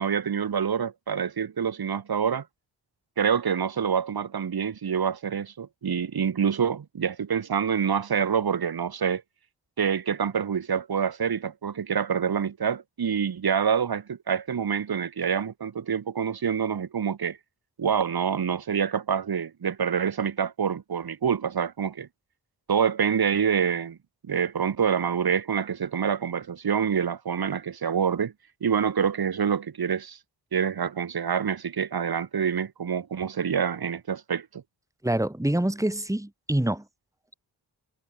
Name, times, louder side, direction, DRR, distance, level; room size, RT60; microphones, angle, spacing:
voice 1, 0.0-2.4 3.2-9.2 9.8-17.4 17.8-22.1 22.7-24.0 24.3-28.3 28.6-30.2 30.5-34.6, right 7 dB, 65° right, 5.1 m, -26 dB
voice 2, 35.0-36.8, right 1 dB, 10° right, 4.1 m, -26 dB
cardioid pair, 55°, 40 cm